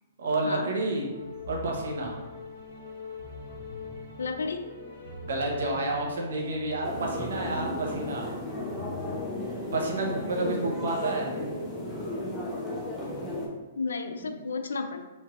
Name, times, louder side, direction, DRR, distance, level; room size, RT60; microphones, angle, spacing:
voice 1, 0.2-1.1 1.5-2.1 5.2-8.3 9.7-11.3 14.3-14.4, right 2 dB, 70° right, 0 dB, 0.7 m, -30 dB
sound 1, 1.1-10.4, left 2 dB, 55° left, 1.3 m, -42 dB
voice 2, 4.2-4.7 13.8-15.1, left 4 dB, 80° left, 7 dB, 0.3 m, -32 dB
sound 2, 6.8-13.5, left 1 dB, 5° left, 0.7 m, -34 dB
3.2 x 3.0 x 2.4 m, 1.1 s
hypercardioid pair, 125°, 0 cm